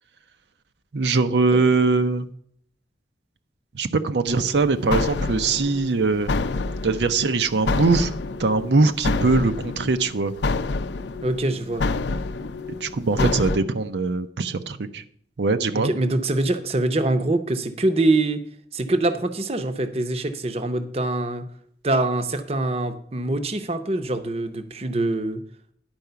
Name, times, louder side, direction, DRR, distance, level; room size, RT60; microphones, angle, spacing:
voice 1, 0.9-2.3 3.7-6.3 6.8-8.1 8.4-10.3 12.8-15.0 15.4-15.9, right 3 dB, 80° right, 9 dB, 0.6 m, -21 dB
sound 1, 4.3-13.6, left 3 dB, 85° left, 0.5 m, -28 dB
voice 2, 11.2-11.8 13.1-13.5 15.7-18.4 18.7-21.5 21.8-25.4, right 2 dB, 35° right, 9 dB, 0.7 m, -24 dB
10.5 x 4.8 x 6.7 m, 0.64 s
head